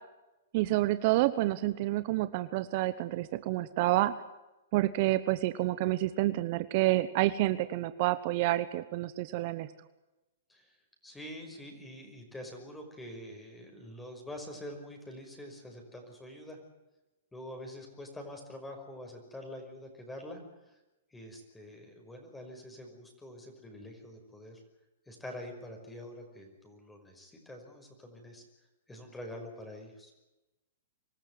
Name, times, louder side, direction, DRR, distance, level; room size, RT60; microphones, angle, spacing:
voice 1, 0.5-4.1 4.7-9.7, right 17 dB, 50° right, 14 dB, 1.0 m, -28 dB
voice 2, 11.0-16.6 17.3-20.4 20.7-20.8 21.1-24.6 25.1-28.4 28.9-30.1, left 1 dB, 10° left, 3 dB, 5.5 m, -46 dB
25.0 x 13.5 x 9.7 m, 1.0 s
hypercardioid pair, 125°, 0 cm